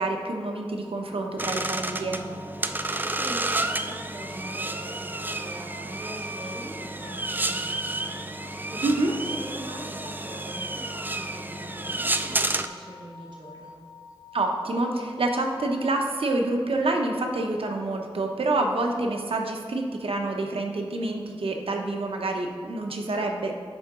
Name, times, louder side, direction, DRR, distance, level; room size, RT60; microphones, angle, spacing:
voice 1, 0.0-2.2 8.8-9.1 14.3-23.5, right 2 dB, 80° right, 2 dB, 0.7 m, -27 dB
sound 1, 0.8-16.0, left 4 dB, 35° left, 0.7 m, -47 dB
sound 2, 1.4-12.7, right 2 dB, 20° right, 0.3 m, -31 dB
voice 2, 2.6-13.8, right 1 dB, 55° right, -4 dB, 1.5 m, -42 dB
10.0 x 3.8 x 3.6 m, 2.1 s
wide cardioid pair, 65°, 9 cm